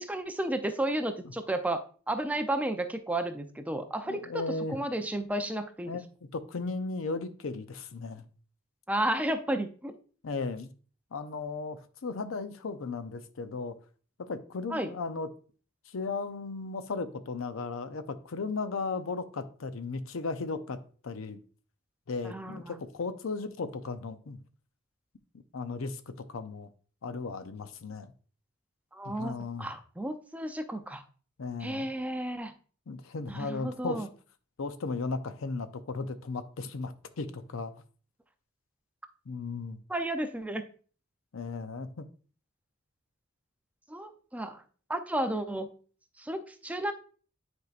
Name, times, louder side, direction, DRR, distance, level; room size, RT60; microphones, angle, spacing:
voice 1, 0.0-4.2 4.7-5.9 8.9-10.0 14.7-14.9 22.2-22.7 28.9-31.0 31.6-32.5 33.3-34.1 39.9-40.7 43.9-44.6 44.9-45.7 46.2-46.9, right 1 dB, 5° right, 0.5 m, -32 dB
voice 2, 4.1-4.8 5.9-6.0 6.3-8.2 10.2-10.7 11.1-13.8 14.2-15.3 15.9-21.4 22.1-24.4 25.5-26.7 27.0-28.1 29.0-29.7 31.4-31.9 32.9-34.1 34.6-37.7 39.3-39.8 41.3-42.1, left 4 dB, 80° left, 0.6 m, -36 dB
9.4 x 4.6 x 2.4 m
head